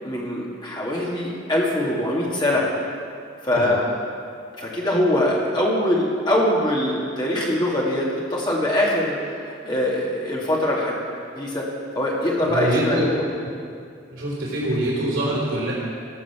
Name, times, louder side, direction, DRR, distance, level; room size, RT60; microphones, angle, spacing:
voice 1, 0.0-2.7 3.4-3.8 4.5-9.2 9.5-11.0 11.3-11.7 11.9-13.2, left 1 dB, 20° left, -4 dB, 2.3 m, -23 dB
voice 2, 12.5-13.1 14.1-15.7, right 1 dB, 85° right, -6 dB, 3.5 m, -24 dB
17.5 x 6.1 x 7.3 m, 2.3 s
head